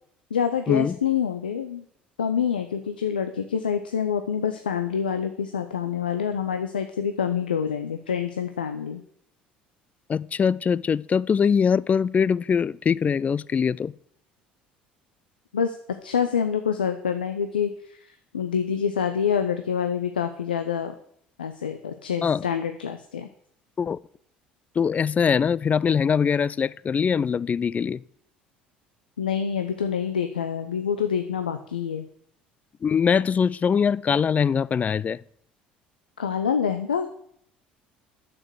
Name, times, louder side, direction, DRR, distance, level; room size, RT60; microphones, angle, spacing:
voice 1, 0.3-1.8 2.2-9.0 15.5-15.8 16.0-20.9 21.4-23.3 29.2-32.1 36.2-37.1, left 7 dB, 85° left, 0.6 m, -26 dB
voice 2, 10.1-13.9 22.2-22.4 23.8-24.0 24.8-28.0 32.8-35.2, left 6 dB, 30° left, 0.4 m, -22 dB
8.8 x 6.8 x 8.0 m
hypercardioid pair, 65°, 5 cm